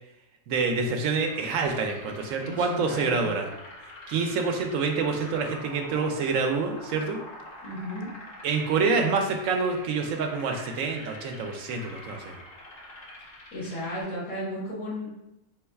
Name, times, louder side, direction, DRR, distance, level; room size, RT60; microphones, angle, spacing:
voice 1, 0.5-3.5 4.1-7.2 8.4-12.4, right 4 dB, 90° right, 3 dB, 1.0 m, -27 dB
sound 1, 1.2-14.0, left 1 dB, 50° left, 1.1 m, -46 dB
voice 2, 2.4-3.4 7.6-8.1 13.5-15.1, left 1 dB, 80° left, -8 dB, 1.8 m, -34 dB
4.0 x 2.3 x 4.4 m, 0.88 s
omnidirectional pair, 1.3 m